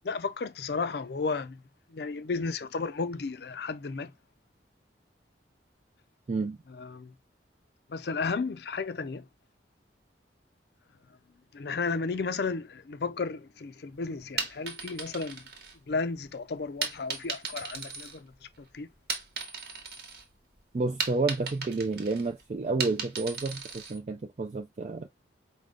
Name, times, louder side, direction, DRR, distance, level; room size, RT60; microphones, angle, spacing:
voice 1, 0.0-1.6 1.9-4.1 6.8-7.1 7.9-9.2 11.5-15.4 15.9-18.3 18.7-18.9, left 4 dB, 60° left, 0.4 m, -33 dB
voice 2, 6.3-6.6 20.7-25.1, right 3 dB, 35° right, 0.3 m, -30 dB
sound 1, 14.2-16.2 16.8-18.6 18.9-20.2 20.6-24.0, right 5 dB, 55° right, 1.2 m, -36 dB
5.0 x 2.2 x 3.7 m
head